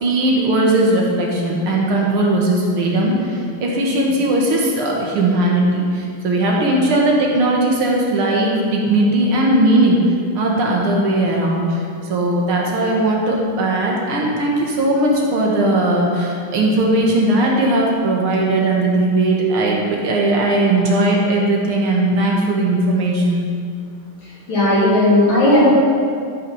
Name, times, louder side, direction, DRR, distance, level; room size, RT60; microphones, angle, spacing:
voice 1, 0.0-10.0 10.4-23.4, right 1 dB, 75° right, -2 dB, 2.4 m, -18 dB
voice 2, 24.5-25.7, left 1 dB, 65° left, -8 dB, 4.0 m, -14 dB
12.5 x 6.0 x 5.5 m, 2.3 s
omnidirectional pair, 2.4 m